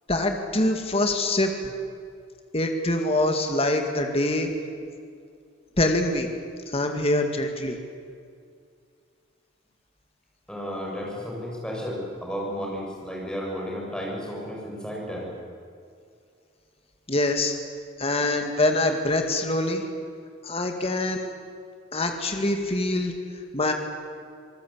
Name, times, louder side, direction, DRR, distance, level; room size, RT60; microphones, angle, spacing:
voice 1, 0.1-1.5 2.5-4.5 5.8-6.3 6.7-7.8 17.1-17.5 18.0-19.8 20.4-21.3 21.9-23.1 23.5-23.7, left 1 dB, 30° left, 4 dB, 2.1 m, -24 dB
voice 2, 10.5-15.3, equal, 5° left, -2 dB, 7.0 m, -33 dB
27.0 x 19.5 x 8.7 m, 2.2 s
head